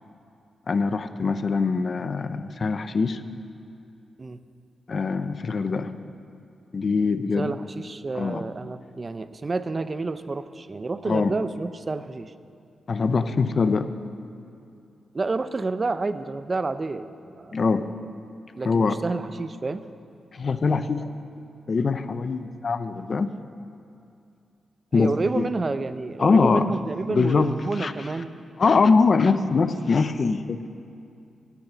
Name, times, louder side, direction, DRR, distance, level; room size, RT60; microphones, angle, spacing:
voice 1, 0.7-3.2 4.9-5.9 6.7-7.6 8.2-8.5 11.1-11.3 12.9-13.9 17.5-17.9 18.6-19.0 20.3-21.0 21.7-23.3 24.9-25.5 26.2-26.7 27.1-27.9 28.6-30.7, left 4 dB, 40° left, 11 dB, 0.5 m, -23 dB
voice 2, 7.3-12.3 15.1-17.6 18.5-19.8 24.9-28.3, right 3 dB, 25° right, 12 dB, 0.5 m, -29 dB
13.5 x 7.1 x 9.1 m, 2.5 s
wide cardioid pair, 150°, 0 cm